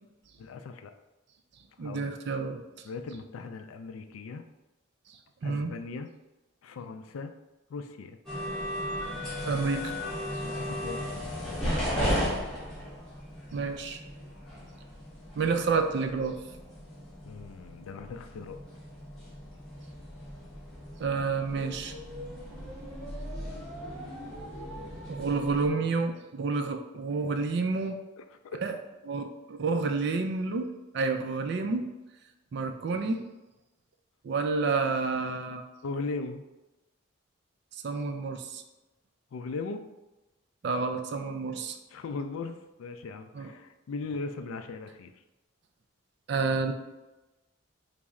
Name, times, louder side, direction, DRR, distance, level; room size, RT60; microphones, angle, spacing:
voice 1, 0.4-0.9 1.8-2.1 2.8-4.4 5.4-6.1 6.6-7.3 7.7-8.2 10.4-12.4 17.2-18.6 28.2-28.6 35.8-36.4 39.3-39.8 41.9-45.1, left 4 dB, 80° left, 8 dB, 0.3 m, -39 dB
voice 2, 1.8-2.6 5.4-5.7 9.4-9.9 13.5-14.0 15.4-16.4 21.0-21.9 25.1-28.0 28.6-28.8 29.1-30.7 30.9-31.9 32.5-33.3 34.2-35.6 37.8-38.6 40.6-41.8 43.3-43.5 46.3-46.7, right 4 dB, 55° right, 6 dB, 0.3 m, -29 dB
sound 1, 8.3-25.7, equal, 5° left, 1.0 m, -36 dB
4.2 x 2.0 x 3.5 m, 1.0 s
head